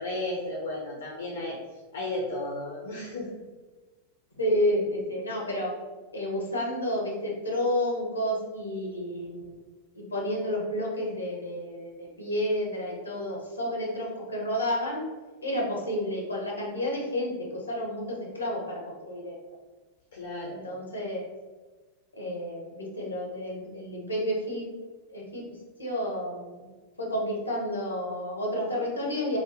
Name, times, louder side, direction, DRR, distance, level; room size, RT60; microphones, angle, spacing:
voice 1, 0.0-1.6 1.9-3.3 20.1-20.6, left 2 dB, 65° left, -3 dB, 0.8 m, -33 dB
voice 2, 4.4-5.7 6.1-9.5 9.9-15.1 15.4-19.4 20.5-21.2 22.1-24.7 25.1-26.7 27.0-29.4, left 1 dB, 80° left, -2 dB, 1.2 m, -30 dB
6.2 x 2.4 x 3.0 m, 1.3 s
figure-of-eight pair, 90°, 0 cm